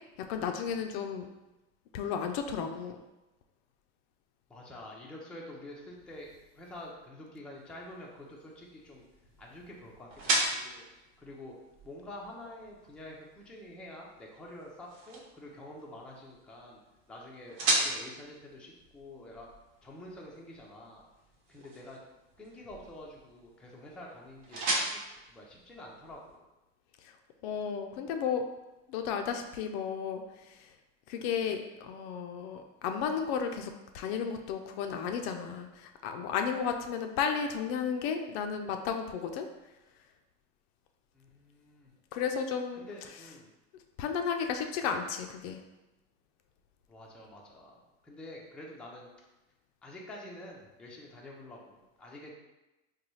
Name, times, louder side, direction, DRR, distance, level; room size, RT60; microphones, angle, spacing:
voice 1, 0.3-1.3 1.9-3.0 27.0-27.1 27.4-28.4 28.9-30.7 31.1-39.5 42.1-42.8 44.0-45.6, left 7 dB, 55° left, 5 dB, 0.5 m, -33 dB
voice 2, 4.5-9.0 9.4-10.8 11.2-11.5 11.8-16.8 17.1-19.5 19.8-21.0 21.5-22.0 22.4-25.0 25.3-26.5 41.1-41.9 42.7-43.5 46.9-49.1 49.8-52.3, left 1 dB, 5° left, -3 dB, 0.4 m, -48 dB
sound 1, 7.5-26.4, right 2 dB, 50° right, 1.0 m, -38 dB
4.0 x 2.3 x 3.1 m, 1.0 s
supercardioid pair, 110°, 39 cm